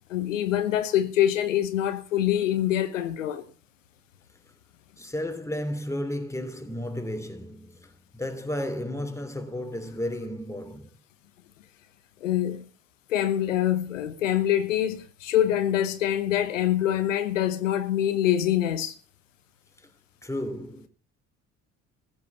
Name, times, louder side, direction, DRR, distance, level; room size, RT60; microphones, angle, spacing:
voice 1, 0.1-3.4 12.2-12.7 13.1-18.9, left 11 dB, 90° left, 1.1 m, -25 dB
voice 2, 5.0-11.0 20.2-20.9, left 1 dB, 10° left, 3.3 m, -33 dB
15.0 x 8.6 x 7.0 m
hypercardioid pair, 55°, 37 cm